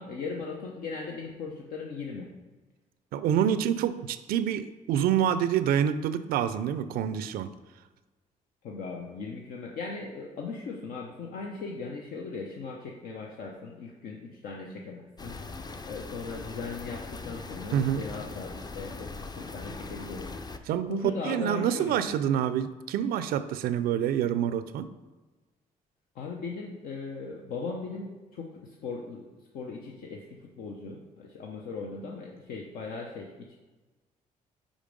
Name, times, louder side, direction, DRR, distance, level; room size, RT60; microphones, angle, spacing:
voice 1, 0.0-2.3 8.6-15.4 15.8-22.2 26.1-29.3 29.5-33.6, left 4 dB, 75° left, 0 dB, 0.7 m, -38 dB
voice 2, 3.1-7.5 17.7-18.0 20.7-21.0 21.2-24.9, right 9 dB, 80° right, 13 dB, 0.4 m, -27 dB
sound 1, 15.2-20.6, left 3 dB, 25° left, 0.5 m, -40 dB
5.1 x 5.1 x 5.2 m, 1.2 s
cardioid pair, 70°, 15 cm